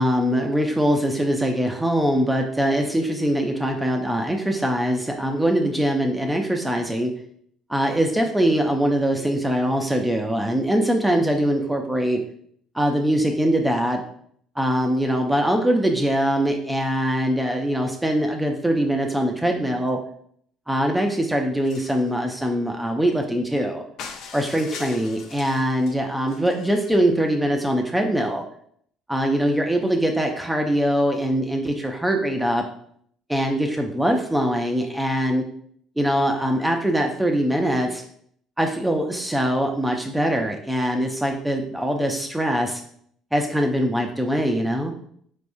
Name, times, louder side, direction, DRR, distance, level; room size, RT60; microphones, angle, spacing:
voice 1, 0.0-7.1 7.7-12.2 12.7-14.0 14.6-20.0 20.7-23.8 24.3-28.4 29.1-32.6 33.3-35.4 36.0-38.0 38.6-42.8 43.3-44.9, equal, 5° right, 3 dB, 0.4 m, -22 dB
sound 1, 21.6-22.1 24.0-26.0 26.3-27.0, left 5 dB, 70° left, 0.5 m, -41 dB
4.3 x 3.4 x 2.6 m, 0.64 s
cardioid pair, 100°, 0 cm